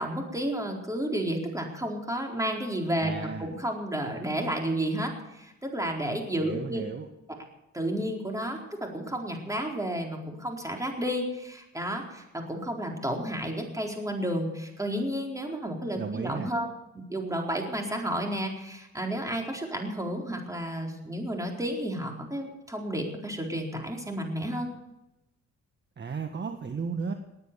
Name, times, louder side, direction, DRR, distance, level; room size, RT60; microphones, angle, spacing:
voice 1, 0.0-6.8 7.7-16.7 16.9-24.7, right 1 dB, 10° right, 1 dB, 4.3 m, -31 dB
voice 2, 3.0-3.5 6.4-7.1 15.9-16.5 26.0-27.1, right 5 dB, 35° right, 5 dB, 1.5 m, -34 dB
19.5 x 9.6 x 6.9 m, 0.92 s
cardioid pair, 90°, 30 cm